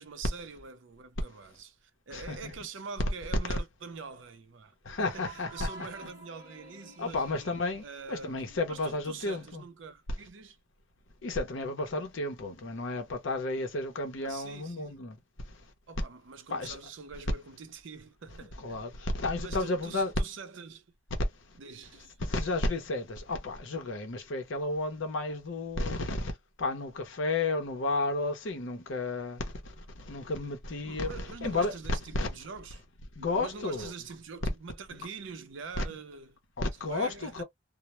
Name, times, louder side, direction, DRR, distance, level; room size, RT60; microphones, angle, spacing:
voice 1, 0.0-7.2 7.8-8.4 8.7-10.6 14.2-15.0 15.9-18.8 19.4-20.9 21.6-22.2 30.9-32.8 33.2-36.4 36.8-37.4, right 4 dB, 65° right, 0.5 m, -44 dB
voice 2, 2.1-2.5 3.5-3.6 4.9-5.7 7.0-9.6 11.2-15.2 16.5-16.8 18.6-20.1 22.2-26.3 26.6-29.7 30.1-31.1 31.4-31.7 32.1-32.3 33.2-33.9 35.8-35.9 36.6-37.4, left 2 dB, 65° left, 0.6 m, -32 dB
sound 1, 4.8-9.6, right 2 dB, 20° right, 0.8 m, -51 dB
2.1 x 2.0 x 2.9 m
head